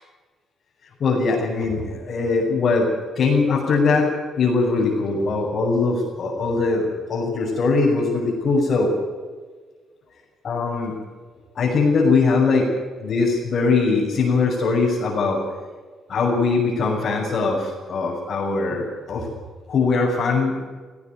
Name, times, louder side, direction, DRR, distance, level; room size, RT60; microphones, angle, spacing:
voice 1, 1.0-2.9 3.1-4.1 4.4-8.9 10.4-10.9 11.5-12.7 13.0-15.4 16.1-19.3 19.7-20.6, left 4 dB, 50° left, -5 dB, 6.8 m, -21 dB
18.5 x 17.0 x 9.4 m, 1.5 s
cardioid pair, 110°, 0 cm